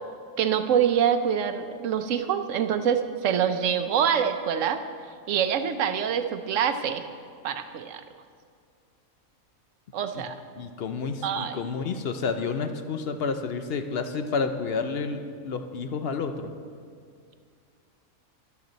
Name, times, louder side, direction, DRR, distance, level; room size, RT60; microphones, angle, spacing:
voice 1, 0.4-4.8 5.3-7.0 7.4-8.0 9.9-10.3 11.2-11.6, right 8 dB, 65° right, 8 dB, 1.0 m, -25 dB
voice 2, 10.6-16.5, left 5 dB, 55° left, 8 dB, 0.7 m, -30 dB
12.5 x 11.5 x 4.0 m, 2.2 s
omnidirectional pair, 1.5 m